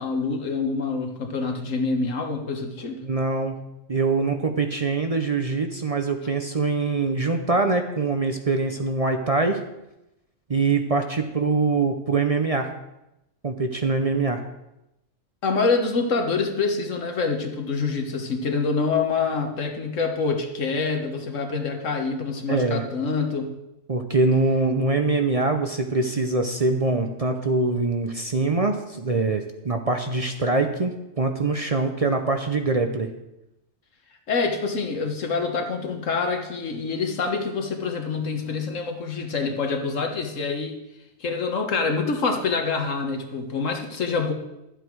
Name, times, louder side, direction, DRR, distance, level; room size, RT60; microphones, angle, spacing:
voice 1, 0.0-3.0 15.4-23.5 34.3-40.8 41.2-44.3, left 4 dB, 85° left, 4 dB, 1.7 m, -26 dB
voice 2, 3.0-3.6 3.9-9.6 10.5-12.7 13.4-14.4 22.5-22.8 23.9-33.1, right 3 dB, 35° right, 5 dB, 0.6 m, -23 dB
12.0 x 8.0 x 4.7 m, 0.90 s
omnidirectional pair, 1.3 m